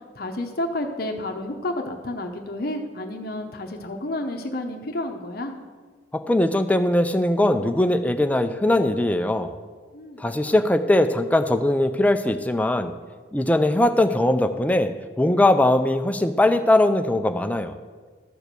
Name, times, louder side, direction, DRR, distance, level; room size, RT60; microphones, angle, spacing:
voice 1, 0.1-5.5 9.9-10.5, left 1 dB, 55° left, 4 dB, 0.8 m, -30 dB
voice 2, 6.1-9.5 10.2-12.9 13.3-14.9 15.2-17.7, left 1 dB, 10° left, 8 dB, 0.4 m, -20 dB
13.0 x 4.6 x 6.7 m, 1.5 s
head